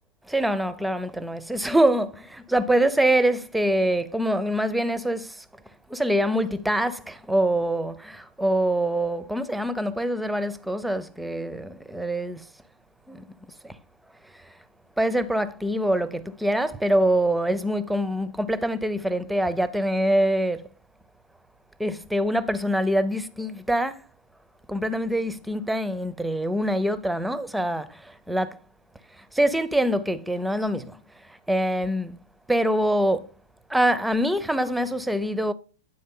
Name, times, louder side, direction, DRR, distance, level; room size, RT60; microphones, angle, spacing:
voice 1, 0.3-5.4 5.9-12.4 13.1-13.2 13.6-13.7 15.0-20.6 21.8-24.0 24.7-28.0 28.3-28.6 29.3-30.9 31.5-32.2 32.5-33.3 33.7-35.5, right 1 dB, 5° right, 0.5 m, -24 dB
9.3 x 3.8 x 3.7 m
hypercardioid pair, 115°, 0 cm